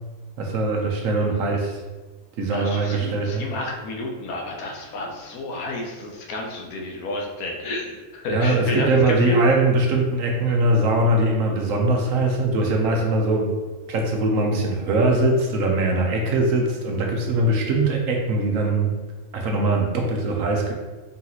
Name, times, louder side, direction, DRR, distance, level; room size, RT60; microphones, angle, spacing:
voice 1, 0.4-1.8 2.4-3.4 8.3-13.5 13.9-18.9 19.3-20.7, right 2 dB, 70° right, 1 dB, 1.1 m, -21 dB
voice 2, 2.5-9.4, left 2 dB, 85° left, 0 dB, 1.3 m, -30 dB
4.0 x 2.9 x 3.9 m, 1.2 s
omnidirectional pair, 1.5 m